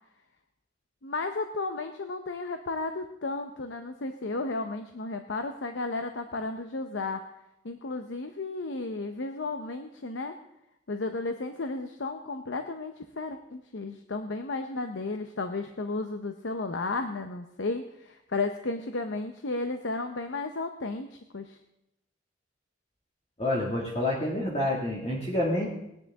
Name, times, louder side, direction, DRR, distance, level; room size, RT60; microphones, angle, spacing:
voice 1, 1.0-7.2 7.6-10.3 10.9-21.6, left 3 dB, 90° left, 7 dB, 0.8 m, -33 dB
voice 2, 23.4-25.7, left 1 dB, 30° left, -4 dB, 2.0 m, -28 dB
19.5 x 9.8 x 3.6 m, 0.83 s
head